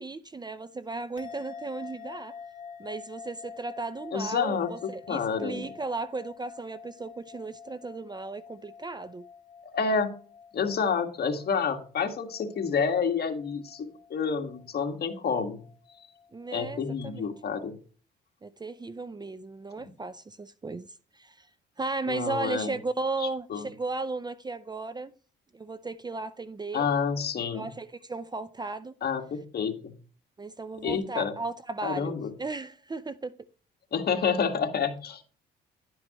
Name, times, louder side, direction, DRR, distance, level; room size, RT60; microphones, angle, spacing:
voice 1, 0.0-2.3 2.8-9.3 16.3-17.3 18.4-20.9 21.1-21.5 21.8-25.1 25.5-26.9 27.5-28.9 30.4-33.3, right 3 dB, 20° right, 0.5 m, -35 dB
sound 1, 1.2-17.7, left 6 dB, 40° left, 2.7 m, -48 dB
voice 2, 4.1-4.7 5.1-5.7 9.7-10.2 10.5-15.6 16.5-17.8 22.1-22.8 23.5-23.7 26.7-27.7 29.0-30.0 30.8-31.3 31.8-32.3 33.9-35.2, left 6 dB, 55° left, 1.8 m, -29 dB
11.0 x 7.5 x 3.0 m
cardioid pair, 90°, 20 cm